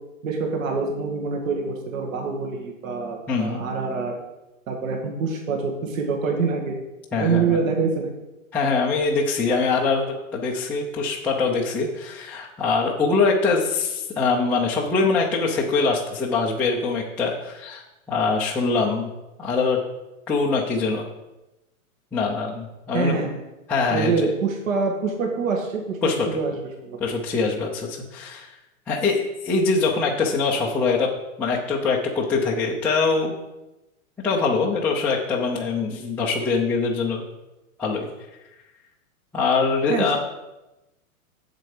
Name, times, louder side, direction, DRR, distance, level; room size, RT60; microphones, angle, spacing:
voice 1, 0.2-4.1 4.7-6.8 7.2-8.1 22.9-23.4 23.9-26.0 26.3-26.5 26.8-27.0 39.9-40.2, right 4 dB, 65° right, 1 dB, 2.0 m, -25 dB
voice 2, 3.3-3.6 7.1-7.6 8.5-19.1 19.4-19.8 20.3-21.1 22.1-23.2 23.7-24.3 26.0-26.3 27.0-28.6 28.9-31.1 31.4-33.4 34.2-37.2 37.8-38.1 39.3-40.2, left 4 dB, 5° left, -6 dB, 0.4 m, -23 dB
7.8 x 7.6 x 4.9 m, 0.99 s
hypercardioid pair, 135°, 42 cm